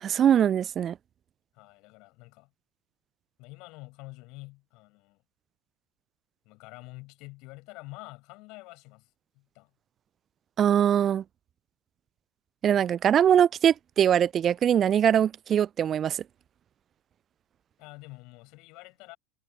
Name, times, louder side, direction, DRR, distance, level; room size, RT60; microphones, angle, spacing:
voice 1, 0.0-1.0 10.6-11.2 12.6-16.2, right 9 dB, 35° right, 0.3 m, -22 dB
voice 2, 1.5-2.5 3.4-5.2 6.4-9.7 17.8-19.2, left 24 dB, 55° left, 6.7 m, -47 dB
hypercardioid pair, 80°, 0 cm